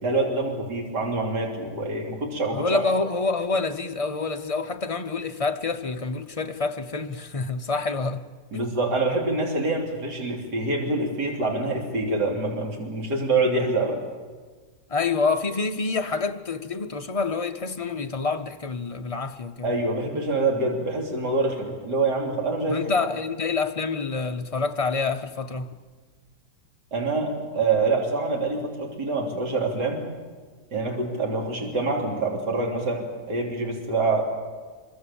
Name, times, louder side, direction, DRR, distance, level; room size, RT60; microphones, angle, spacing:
voice 1, 0.0-2.8 8.5-14.0 19.6-22.9 26.9-30.0 30.7-34.2, right 3 dB, 70° right, 3.7 m, -26 dB
voice 2, 2.5-8.2 8.5-8.7 14.9-19.7 22.7-25.8, left 4 dB, 60° left, 0.3 m, -27 dB
24.5 x 24.0 x 7.1 m
omnidirectional pair, 1.9 m